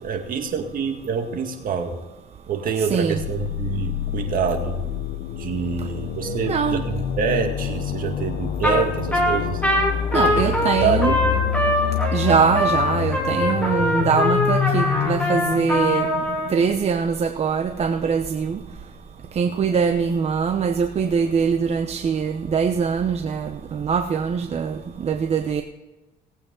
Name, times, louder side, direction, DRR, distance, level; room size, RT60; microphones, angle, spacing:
voice 1, 0.0-2.0 2.5-4.8 5.4-9.6 10.3-10.5 10.8-11.4, right 6 dB, 55° right, 4 dB, 2.2 m, -26 dB
voice 2, 2.8-3.3 6.2-6.9 10.1-11.2 12.1-16.1 16.5-18.6 19.3-25.6, right 6 dB, 40° right, 6 dB, 0.8 m, -23 dB
sound 1, 3.2-16.9, left 10 dB, 75° left, 0.8 m, -27 dB
Trumpet, 8.6-8.8 9.1-16.5, left 1 dB, 10° left, 3.2 m, -22 dB
19.0 x 8.7 x 3.9 m, 1.1 s
cardioid pair, 110°, 17 cm